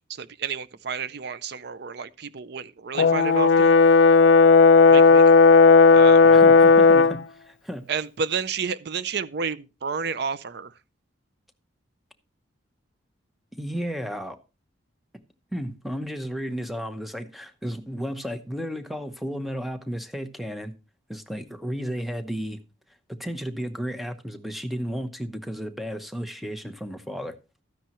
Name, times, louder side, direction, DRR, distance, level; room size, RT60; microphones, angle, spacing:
voice 1, 0.1-3.7 4.9-5.2 5.9-6.3 7.9-10.7, right 6 dB, 55° right, 0.5 m, -31 dB
Brass instrument, 3.0-7.2, left 4 dB, 75° left, 0.5 m, -14 dB
voice 2, 6.2-7.8 13.6-14.4 15.5-20.7 21.1-22.6 23.1-27.3, equal, ahead, 0.8 m, -33 dB
13.5 x 10.0 x 3.0 m
head